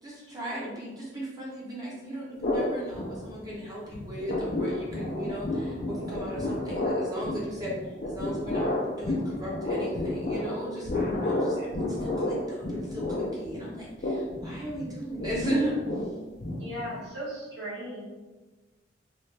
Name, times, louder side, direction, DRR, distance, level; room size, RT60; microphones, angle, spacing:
voice 1, 0.0-16.1, right 1 dB, 20° right, -6 dB, 0.7 m, -36 dB
sound 1, 2.4-3.7 3.9-17.1, left 1 dB, 45° left, 0.5 m, -31 dB
voice 2, 16.6-18.1, equal, 65° right, -7 dB, 1.3 m, -37 dB
3.1 x 2.3 x 3.2 m, 1.2 s
head